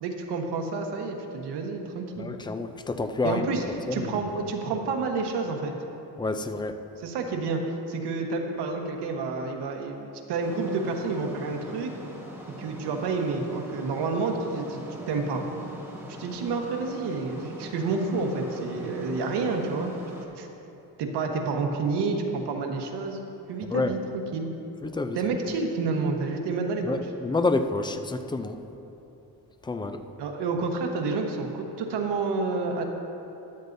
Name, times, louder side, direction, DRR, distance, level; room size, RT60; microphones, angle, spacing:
voice 1, 0.0-2.3 3.2-3.6 3.9-5.7 7.0-7.6 7.9-11.9 12.6-15.4 16.2-19.9 20.4-20.5 21.0-23.2 23.5-24.5 25.1-27.1 30.2-32.8, right 4 dB, 90° right, 2 dB, 1.3 m, -29 dB
voice 2, 2.2-3.5 3.9-4.1 6.2-6.8 23.7-23.9 24.8-25.2 26.8-28.6 29.6-30.0, left 3 dB, 10° left, 8 dB, 0.4 m, -28 dB
sound 1, 10.4-20.2, right 1 dB, 5° right, 1.4 m, -41 dB
14.5 x 10.5 x 2.7 m, 2.9 s
cardioid pair, 130°, 40 cm